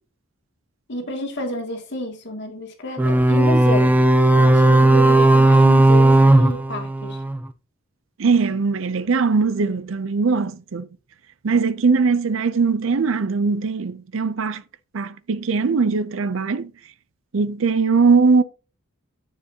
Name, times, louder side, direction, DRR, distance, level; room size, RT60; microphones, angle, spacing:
voice 1, 0.9-3.9 4.4-7.2, equal, 55° left, 2.3 m, -29 dB
sound 1, 3.0-7.4, right 1 dB, 10° right, 0.5 m, -15 dB
voice 2, 8.2-10.9 11.4-14.6 14.9-16.7 17.3-18.4, right 4 dB, 65° right, 0.5 m, -20 dB
9.6 x 7.5 x 2.8 m
head